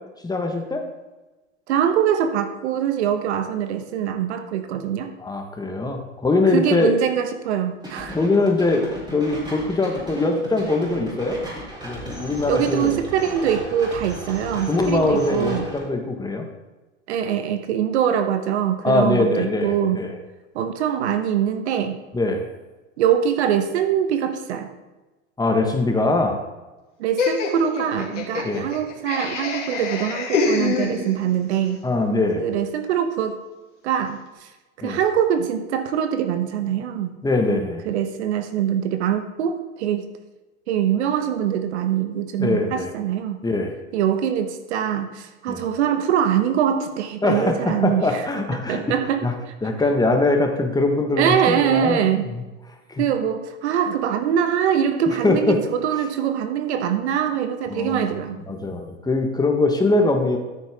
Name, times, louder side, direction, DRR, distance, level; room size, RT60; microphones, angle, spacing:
voice 1, 0.2-0.8 5.2-6.9 8.1-8.8 9.1-11.4 11.8-12.9 14.7-16.5 18.8-20.2 22.1-22.4 25.4-26.4 28.4-28.7 31.8-32.4 34.8-35.0 37.2-37.8 42.4-42.9 43.4-43.7 45.5-45.6 47.2-48.8 49.2-49.3 49.6-52.2 52.9-53.0 55.2-55.6 57.7-58.2 58.5-60.4, left 2 dB, 10° left, 3 dB, 1.5 m, -22 dB
voice 2, 1.7-5.1 6.5-8.2 12.5-15.7 17.1-20.0 20.5-22.0 23.0-24.7 27.0-31.8 32.4-33.4 33.8-34.5 34.8-37.2 37.8-40.1 40.7-43.4 43.9-48.3 48.7-49.2 51.2-52.3 53.0-58.4, right 9 dB, 65° right, 8 dB, 1.2 m, -23 dB
sound 1, 7.8-15.8, equal, 10° right, 3.8 m, -36 dB
Laughter, 27.2-31.4, left 4 dB, 90° left, 2.7 m, -26 dB
13.0 x 6.9 x 3.7 m, 1.1 s
hypercardioid pair, 95°, 36 cm